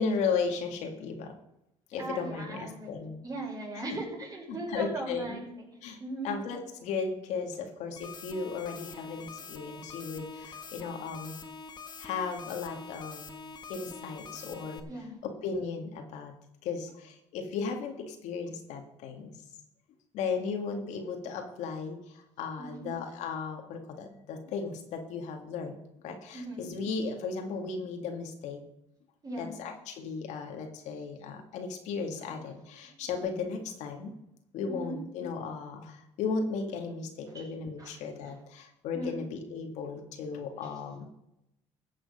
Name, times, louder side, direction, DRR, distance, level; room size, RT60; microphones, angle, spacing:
voice 1, 0.0-1.3 1.9-3.2 4.7-5.4 5.8-6.0 6.2-11.4 12.0-13.3 13.7-14.9 15.2-16.3 16.6-19.4 20.1-28.6 29.4-34.1 34.5-41.1, left 5 dB, 75° left, 4 dB, 2.0 m, -35 dB
voice 2, 1.9-3.0 3.2-5.7 6.0-6.3 14.9-15.2 22.6-22.9 26.3-26.7 29.2-29.6 32.3-32.4 32.9-33.0 34.7-35.0 37.3-37.5 37.8-37.9 38.2-38.4 38.9-39.2, right 2 dB, 30° right, -1 dB, 5.9 m, -38 dB
sound 1, 8.0-14.8, left 5 dB, 35° left, 1.6 m, -45 dB
15.5 x 7.6 x 5.6 m, 0.85 s
cardioid pair, 95°, 12 cm